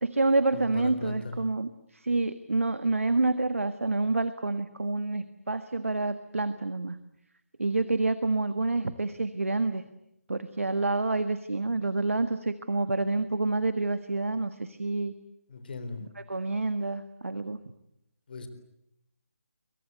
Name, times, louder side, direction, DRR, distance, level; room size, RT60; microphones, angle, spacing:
voice 1, 0.0-7.0 7.6-9.8 10.3-15.1 16.2-17.6, right 2 dB, 65° right, 12 dB, 1.6 m, -28 dB
voice 2, 0.5-1.4 15.5-16.0 18.3-18.5, left 3 dB, 40° left, 10 dB, 4.0 m, -37 dB
29.5 x 24.0 x 8.1 m, 0.80 s
figure-of-eight pair, 155°, 8 cm